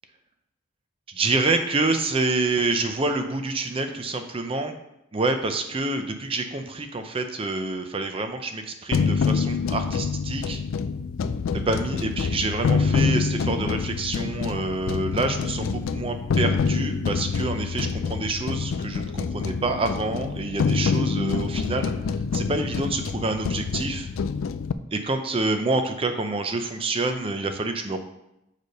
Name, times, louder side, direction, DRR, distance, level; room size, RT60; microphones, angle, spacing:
voice 1, 1.1-4.7 5.1-10.6 11.5-21.9 22.3-24.1 24.9-28.0, right 3 dB, 25° right, 6 dB, 0.5 m, -27 dB
sound 1, 8.9-24.7, left 5 dB, 80° left, 0.3 m, -26 dB
6.5 x 3.3 x 5.2 m, 0.85 s
head